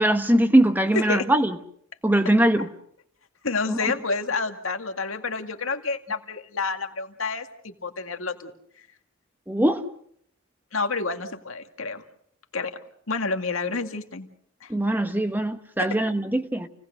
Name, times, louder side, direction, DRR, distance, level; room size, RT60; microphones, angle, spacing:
voice 1, 0.0-1.6 2.0-2.7 3.7-3.8 9.5-9.8 14.7-16.7, right 1 dB, 10° right, 1.1 m, -21 dB
voice 2, 0.9-1.3 2.6-2.7 3.4-8.5 10.7-12.0 12.5-12.8 13.1-14.3 14.6-14.7 15.8-15.9, left 4 dB, 80° left, 2.1 m, -29 dB
29.0 x 18.5 x 6.6 m
head